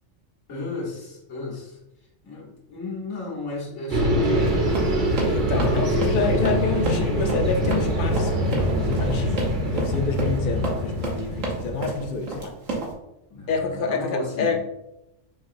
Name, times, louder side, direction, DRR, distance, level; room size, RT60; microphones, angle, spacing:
voice 1, 0.5-1.8 2.2-4.6 9.6-9.9 13.3-14.6, left 3 dB, 90° left, -4 dB, 1.5 m, -34 dB
sound 1, 3.9-12.2, equal, 45° right, 0.9 m, -24 dB
Run, 4.4-12.9, right 2 dB, 80° right, 1.3 m, -31 dB
voice 2, 5.3-12.5 13.5-14.6, left 4 dB, 60° left, 4 dB, 0.5 m, -28 dB
5.8 x 2.7 x 2.5 m, 0.88 s
omnidirectional pair, 1.3 m